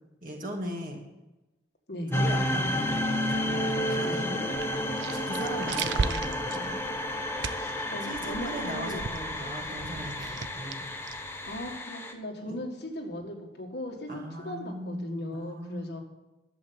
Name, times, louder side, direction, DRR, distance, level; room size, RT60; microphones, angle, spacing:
voice 1, 0.2-1.0 2.1-4.5 5.1-6.8 8.0-10.9 12.5-12.6 14.1-16.0, equal, 45° right, 1 dB, 2.2 m, -38 dB
sound 1, 2.1-12.1, left 1 dB, 10° left, 0.8 m, -31 dB
sound 2, 4.5-11.8, right 5 dB, 75° right, 0.5 m, -37 dB
voice 2, 7.5-9.0 11.5-16.0, left 1 dB, 60° left, 2 dB, 1.9 m, -38 dB
11.0 x 7.0 x 7.9 m, 1.0 s
head